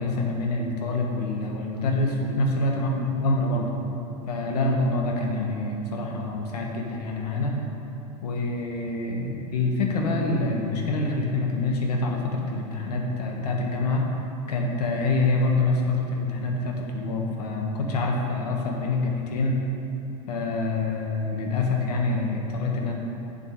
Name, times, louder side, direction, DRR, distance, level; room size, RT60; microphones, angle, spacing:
voice 1, 0.0-3.7 4.3-7.6 8.2-14.0 14.5-19.6 20.3-22.9, left 2 dB, 85° left, 0 dB, 1.5 m, -26 dB
8.1 x 6.8 x 4.6 m, 2.9 s
supercardioid pair, 135°, 20 cm